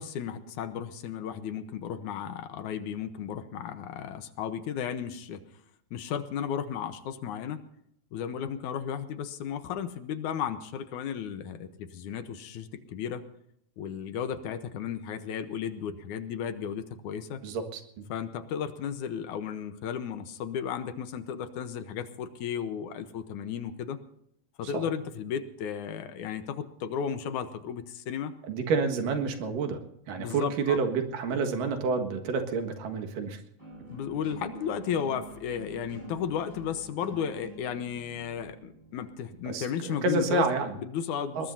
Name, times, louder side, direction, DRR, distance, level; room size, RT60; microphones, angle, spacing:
voice 1, 0.0-5.4 5.9-7.6 8.1-13.2 13.8-17.4 18.1-24.0 24.6-28.3 30.2-30.8 33.9-40.5 40.8-41.5, left 8 dB, 75° left, 10 dB, 2.3 m, -34 dB
voice 2, 17.4-18.0 24.7-24.8 28.5-29.8 30.1-33.4 39.4-40.7 41.4-41.5, right 4 dB, 85° right, 5 dB, 3.3 m, -29 dB
sound 1, 33.6-39.6, right 2 dB, 35° right, 8.3 m, -47 dB
21.0 x 20.0 x 2.7 m, 0.72 s
omnidirectional pair, 3.8 m